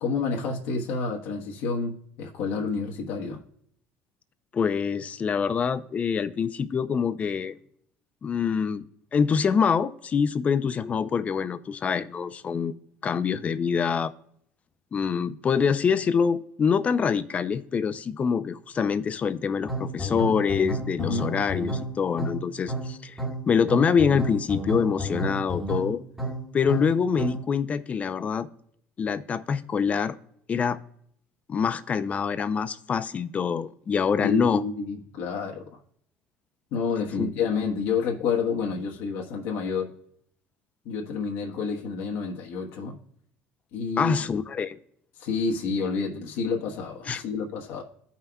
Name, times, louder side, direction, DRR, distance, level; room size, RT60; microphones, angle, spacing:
voice 1, 0.0-3.4 21.0-21.3 34.2-35.8 36.7-39.9 40.8-43.0 43.7-44.3 45.2-47.8, left 5 dB, 75° left, 1.2 m, -29 dB
voice 2, 4.5-7.5 8.2-8.8 9.1-12.7 13.0-14.1 14.9-23.2 23.5-26.0 26.5-28.5 29.0-30.2 30.5-30.8 31.5-34.6 37.2-37.3 44.0-44.8 47.1-47.2, left 6 dB, 35° left, 0.5 m, -25 dB
sound 1, 19.7-27.5, right 1 dB, 5° right, 1.2 m, -32 dB
14.0 x 5.6 x 2.3 m
supercardioid pair, 105°, 4 cm